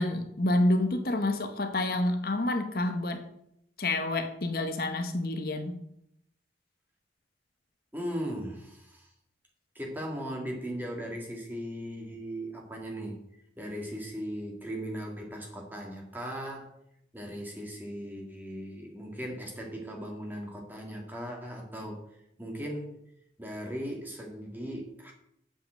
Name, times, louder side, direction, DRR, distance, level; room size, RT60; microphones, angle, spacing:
voice 1, 0.0-3.2 3.8-5.7, left 1 dB, 55° left, 7 dB, 0.9 m, -28 dB
voice 2, 7.9-9.1 9.8-13.2 13.6-16.7 17.1-22.0 22.4-23.0 23.4-25.1, equal, 10° right, 0 dB, 1.9 m, -38 dB
7.2 x 5.7 x 7.4 m, 0.77 s
head